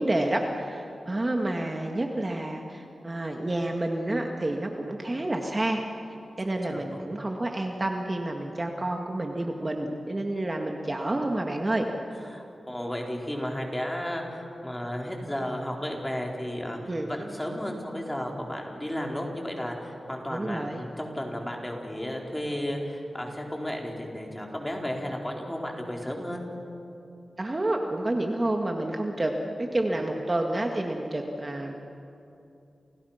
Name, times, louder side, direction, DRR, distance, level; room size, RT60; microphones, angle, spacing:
voice 1, 0.0-5.8 6.4-11.9 16.9-17.1 20.3-20.8 27.4-31.7, right 1 dB, 30° right, 2 dB, 2.0 m, -29 dB
voice 2, 6.7-7.0 12.3-26.4, equal, 10° left, 0 dB, 4.4 m, -33 dB
30.0 x 29.5 x 5.9 m, 2.7 s
wide cardioid pair, 90°, 0 cm